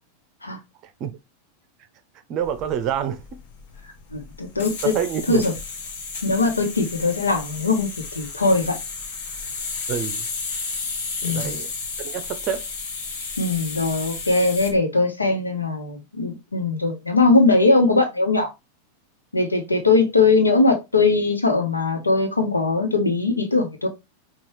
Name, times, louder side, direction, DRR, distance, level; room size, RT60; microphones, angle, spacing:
voice 1, 0.8-1.2 2.3-3.4 4.8-5.4 9.9-10.3 11.2-11.7 12.0-12.6, right 9 dB, 35° right, 0.6 m, -27 dB
sound 1, 2.4-14.8, left 4 dB, 55° left, 1.0 m, -33 dB
voice 2, 4.1-4.7 5.3-5.5 6.2-8.8 11.2-11.6 13.4-18.5 19.3-23.9, left 3 dB, 80° left, 1.0 m, -20 dB
5.4 x 2.4 x 3.1 m
figure-of-eight pair, 90°, 0 cm